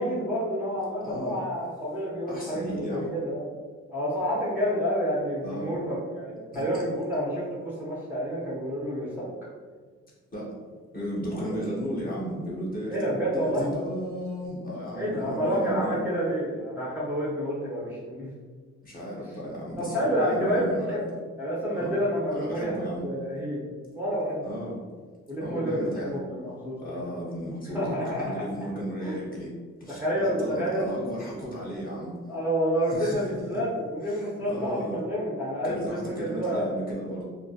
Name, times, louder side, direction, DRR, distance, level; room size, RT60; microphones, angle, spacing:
voice 1, 0.0-3.5 3.9-9.3 11.3-11.6 12.9-13.7 15.0-18.3 19.8-21.0 21.4-23.7 23.9-24.4 25.3-27.1 27.7-28.3 28.6-28.7 29.0-29.2 29.9-30.9 32.3-36.8, equal, 5° right, -8 dB, 0.6 m, -29 dB
voice 2, 1.0-1.4 2.3-3.2 5.4-5.8 6.5-6.6 10.3-10.5 10.9-16.0 18.8-21.0 21.7-21.9 22.3-23.1 24.4-24.8 25.4-26.2 26.8-29.5 29.8-32.1 32.9-33.2 33.5-33.6 34.0-35.0 35.6-37.2, equal, 30° left, -4 dB, 0.8 m, -34 dB
2.2 x 2.1 x 2.7 m, 1.5 s
cardioid pair, 90°, 30 cm